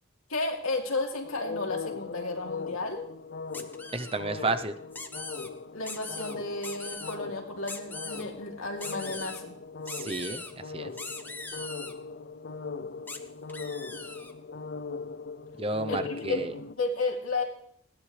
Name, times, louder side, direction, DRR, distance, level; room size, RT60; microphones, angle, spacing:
voice 1, 0.3-3.1 5.7-9.5 15.9-17.4, left 3 dB, 85° left, 1 dB, 3.0 m, -33 dB
sound 1, 1.2-16.7, left 4 dB, 50° left, 0.6 m, -40 dB
sound 2, 3.5-4.2 4.9-5.5 5.8-6.3 6.6-7.2 7.7-8.2 8.8-9.4 9.9-10.5 11.0-11.9 13.1-13.2 13.5-14.3, left 3 dB, 10° left, 0.9 m, -40 dB
voice 2, 3.9-4.7 9.9-10.9 15.6-16.5, right 2 dB, 25° right, 10 dB, 0.6 m, -32 dB
20.0 x 17.0 x 3.3 m, 0.63 s
head